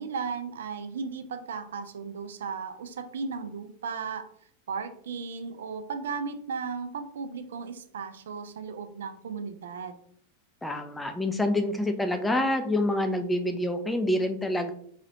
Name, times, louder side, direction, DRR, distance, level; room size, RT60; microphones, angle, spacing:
voice 1, 0.0-4.3 4.7-10.0, right 5 dB, 60° right, 9 dB, 0.4 m, -35 dB
voice 2, 10.6-14.7, left 1 dB, 5° left, 6 dB, 0.4 m, -27 dB
4.0 x 3.0 x 2.7 m, 0.62 s
figure-of-eight pair, 90°, 0 cm